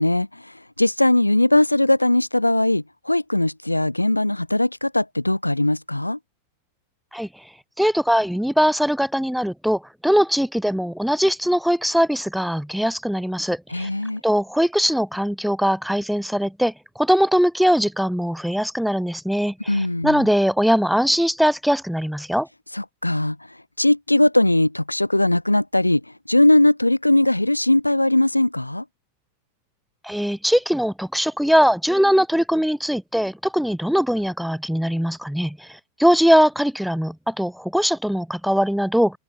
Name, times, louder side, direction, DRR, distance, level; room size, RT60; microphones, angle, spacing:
voice 1, 0.0-6.2 13.7-14.2 19.7-20.2 22.7-23.4 23.8-26.0 26.3-28.8, left 1 dB, 85° left, 5.8 m, -19 dB
voice 2, 7.8-13.9 14.2-22.5 30.0-35.7 36.0-39.2, equal, ahead, 2.0 m, -21 dB
figure-of-eight pair, 90°, 0 cm